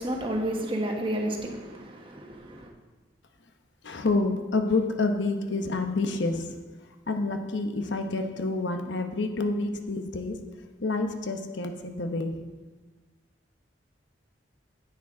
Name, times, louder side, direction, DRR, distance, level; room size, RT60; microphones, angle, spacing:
voice 1, 0.0-2.7, right 1 dB, 30° right, 1.3 m, -31 dB
voice 2, 3.8-6.6 7.1-10.4 10.8-12.4, left 3 dB, 90° left, 0.9 m, -28 dB
10.0 x 8.7 x 3.7 m
head